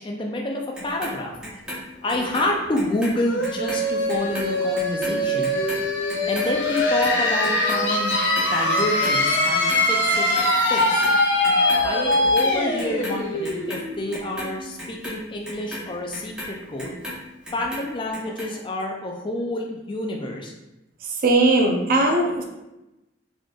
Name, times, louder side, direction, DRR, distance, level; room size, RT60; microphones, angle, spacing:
voice 1, 0.0-1.3 1.9-5.6 6.3-8.1 8.5-10.3 10.7-11.1 11.8-17.0 17.5-20.5, left 1 dB, 25° left, 1 dB, 0.4 m, -28 dB
Clock, 0.7-3.1 3.4-9.8 10.1-11.2 11.4-12.4 12.8-17.2 17.5-18.5 18.8-18.9, equal, 5° right, 0.8 m, -36 dB
sound 1, 3.2-14.8, left 1 dB, 65° left, 0.6 m, -22 dB
voice 2, 21.0-22.4, right 2 dB, 50° right, 2 dB, 0.6 m, -19 dB
4.2 x 3.1 x 2.3 m, 0.96 s
head